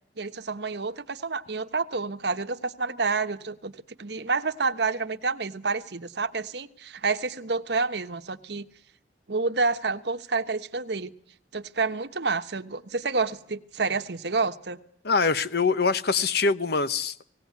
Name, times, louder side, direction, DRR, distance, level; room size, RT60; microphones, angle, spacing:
voice 1, 0.2-8.7 9.3-11.1 11.5-14.8, right 4 dB, 70° right, 8 dB, 1.2 m, -29 dB
voice 2, 15.0-17.2, left 4 dB, 65° left, 14 dB, 1.0 m, -24 dB
18.5 x 17.0 x 9.5 m, 0.65 s
head